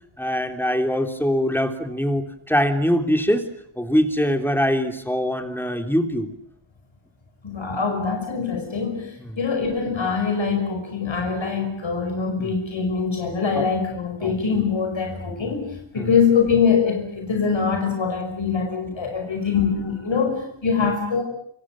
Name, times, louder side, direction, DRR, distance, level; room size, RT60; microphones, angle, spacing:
voice 1, 0.2-3.4 3.8-6.3 9.2-9.4 12.4-12.5 14.2-14.4 15.4-15.5 16.0-16.1, equal, 5° left, 5 dB, 3.3 m, -23 dB
voice 2, 7.4-9.1 9.4-15.6 15.9-21.2, left 5 dB, 65° left, 3 dB, 5.7 m, -23 dB
28.0 x 26.0 x 7.5 m, 0.68 s
wide cardioid pair, 115°, 49 cm